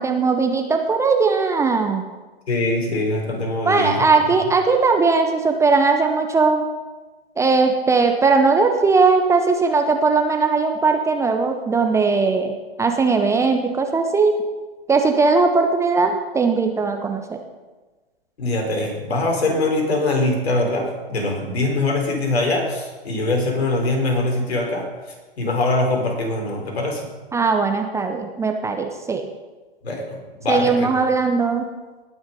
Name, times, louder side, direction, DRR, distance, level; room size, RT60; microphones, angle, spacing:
voice 1, 0.0-2.0 3.6-6.6 7.4-14.3 14.9-17.4 27.3-29.2 30.5-31.6, right 4 dB, 10° right, 5 dB, 0.7 m, -19 dB
voice 2, 2.5-4.1 18.4-24.9 25.4-27.1 29.8-30.0 30.4-30.9, left 2 dB, 75° left, 2 dB, 3.5 m, -22 dB
18.0 x 6.2 x 5.4 m, 1.2 s
hypercardioid pair, 120°, 32 cm